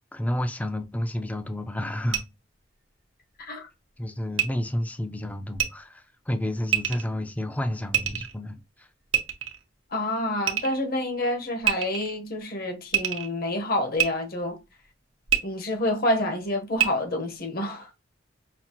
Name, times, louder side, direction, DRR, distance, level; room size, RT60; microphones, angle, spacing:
voice 1, 0.1-2.3 4.0-8.9, left 1 dB, 10° left, 0.4 m, -30 dB
sound 1, 2.1-2.2 4.4-4.5 5.5-5.7 6.7-7.0 7.9-8.3 9.1-9.6 10.5-10.8 11.6-12.2 12.9-13.3 14.0-14.1 15.3-15.4 16.8-16.9, right 9 dB, 80° right, 0.7 m, -25 dB
voice 2, 3.4-3.7 9.9-14.6 15.4-17.9, left 1 dB, 50° left, 1.0 m, -28 dB
5.6 x 2.4 x 2.9 m
head